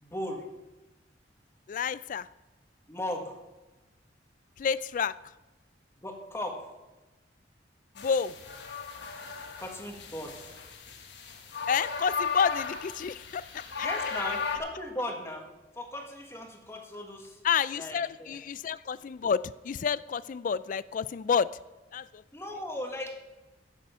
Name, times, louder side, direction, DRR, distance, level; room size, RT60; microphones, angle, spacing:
voice 1, 0.0-0.5 2.9-3.4 6.0-6.6 9.6-10.3 13.8-15.5 15.7-17.4 17.7-18.4 22.3-23.2, left 1 dB, 15° left, 1.5 m, -37 dB
voice 2, 1.7-2.3 4.6-5.2 8.0-8.3 11.7-13.9 17.4-21.5 21.9-22.2, left 6 dB, 45° left, 0.3 m, -29 dB
sound 1, 8.0-14.6, left 5 dB, 70° left, 1.4 m, -36 dB
15.5 x 6.8 x 5.6 m
head